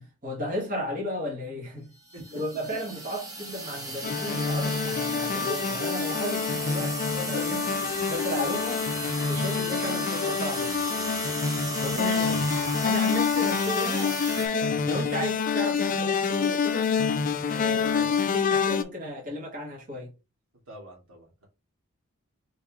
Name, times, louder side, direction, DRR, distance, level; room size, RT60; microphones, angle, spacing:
voice 1, 0.0-1.9 2.3-7.7 8.1-8.8 9.3-10.7 11.8-16.9 17.5-20.1, equal, 40° right, 1.9 m, -35 dB
sound 1, 2.0-14.5, right 2 dB, 15° right, 1.0 m, -35 dB
sound 2, 4.0-18.8, left 6 dB, 40° left, 0.4 m, -27 dB
voice 2, 17.6-18.2 20.7-21.5, right 1 dB, 70° right, 2.6 m, -45 dB
4.5 x 3.1 x 3.6 m
head